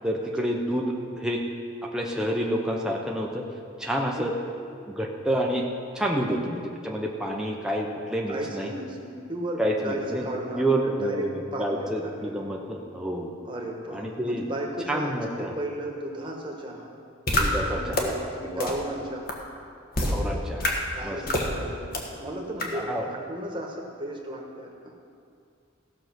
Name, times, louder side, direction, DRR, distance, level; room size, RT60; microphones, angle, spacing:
voice 1, 0.0-0.8 1.2-1.4 1.8-3.4 3.8-4.3 4.9-5.6 5.9-8.7 9.6-10.3 10.5-13.3 13.9-14.4 14.9-15.5 17.4-18.2 18.5-18.7 20.0-21.4 22.7-23.1, right 1 dB, 5° right, -1 dB, 0.8 m, -28 dB
voice 2, 8.3-12.4 13.4-16.9 17.3-19.4 20.0-24.9, right 1 dB, 25° right, 0 dB, 1.4 m, -35 dB
sound 1, 17.3-17.4 17.9-18.0 18.6-18.7 19.3-19.4 19.9-20.1 20.6-20.7 21.3-21.5 21.9-22.0 22.6-22.7, left 1 dB, 45° left, 1.4 m, -24 dB
15.5 x 6.6 x 6.0 m, 2.3 s
head